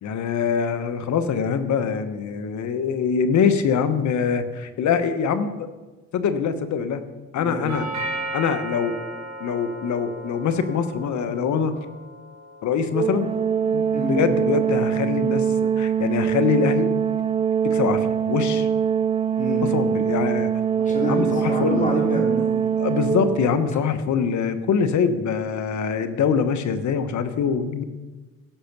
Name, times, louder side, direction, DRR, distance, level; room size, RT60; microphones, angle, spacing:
voice 1, 0.0-5.7 6.1-7.0 7.3-7.9 8.3-9.0 9.4-11.8 12.6-13.3 13.7-16.9 17.6-18.7 19.7-20.5 21.0-21.8 22.8-27.8, left 6 dB, 70° left, 10 dB, 1.2 m, -24 dB
voice 2, 7.4-8.1 13.9-14.2 19.4-19.7 20.8-22.7, equal, 25° left, 0 dB, 3.6 m, -28 dB
Doorbell, 7.7-15.7, right 2 dB, 60° right, 3.9 m, -37 dB
Organ, 12.9-23.8, right 7 dB, 20° right, 0.3 m, -23 dB
16.5 x 5.8 x 6.8 m, 1.2 s
cardioid pair, 90°, 30 cm